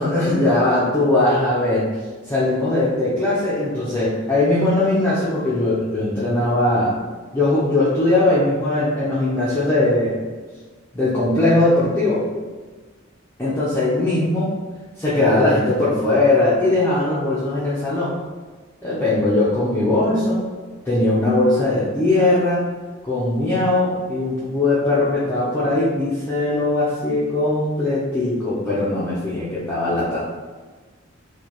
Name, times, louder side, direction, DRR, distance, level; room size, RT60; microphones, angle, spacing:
voice 1, 0.0-1.8 2.3-6.9 7.3-10.2 10.9-12.2 13.4-14.5 15.0-18.1 18.8-20.4 20.8-22.6 23.0-30.2, left 2 dB, 10° left, -10 dB, 0.7 m, -20 dB
4.8 x 2.4 x 3.0 m, 1.4 s
head